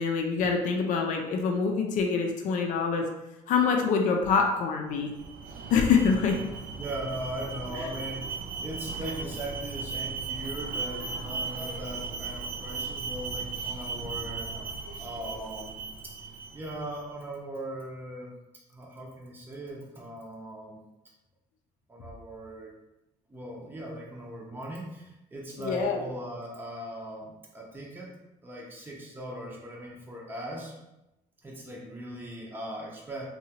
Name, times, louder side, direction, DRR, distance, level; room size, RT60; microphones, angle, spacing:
voice 1, 0.0-3.1 3.5-5.1 5.7-6.4 25.6-26.0, left 5 dB, 60° left, 2 dB, 0.5 m, -25 dB
Alarm, 5.0-17.0, right 4 dB, 70° right, 0.4 m, -37 dB
voice 2, 6.1-6.5 6.8-14.5 15.0-16.2 16.5-18.3 18.7-20.8 21.9-22.7 23.3-28.1 28.4-30.7 31.4-33.2, right 1 dB, 15° right, -3 dB, 0.6 m, -39 dB
2.8 x 2.3 x 2.8 m, 0.94 s
supercardioid pair, 90°, 15 cm